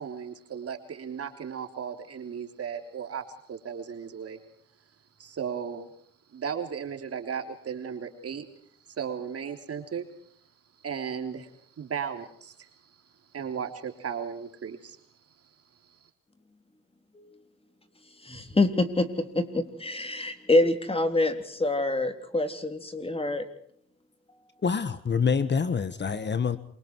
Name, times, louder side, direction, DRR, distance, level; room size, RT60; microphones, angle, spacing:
voice 1, 0.0-3.2 3.5-4.4 5.2-5.9 6.3-8.5 8.9-10.0 10.8-12.9 13.3-15.0 15.8-16.0, right 7 dB, 50° right, 5 dB, 3.6 m, -35 dB
voice 2, 18.2-23.4, left 2 dB, 20° left, 7 dB, 3.7 m, -26 dB
voice 3, 24.6-26.6, left 6 dB, 35° left, 13 dB, 1.5 m, -26 dB
28.0 x 24.5 x 4.7 m, 0.63 s
cardioid pair, 90°, 30 cm